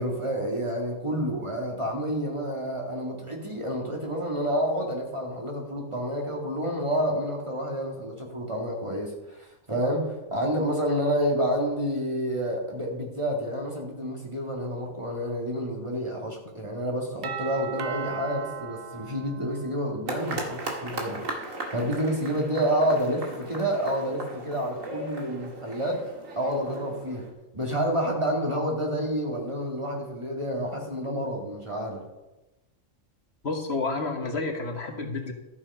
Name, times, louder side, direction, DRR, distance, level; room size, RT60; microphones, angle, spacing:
voice 1, 0.0-26.0 26.4-27.3 27.5-32.0, equal, 20° right, -1 dB, 2.2 m, -29 dB
Doorbell, 17.2-20.1, right 7 dB, 55° right, 0.7 m, -37 dB
sound 1, 20.1-27.3, right 2 dB, 80° right, 2.2 m, -37 dB
voice 2, 33.4-35.3, left 3 dB, 55° left, 4 dB, 1.5 m, -30 dB
12.5 x 7.3 x 5.5 m, 1.0 s
omnidirectional pair, 1.4 m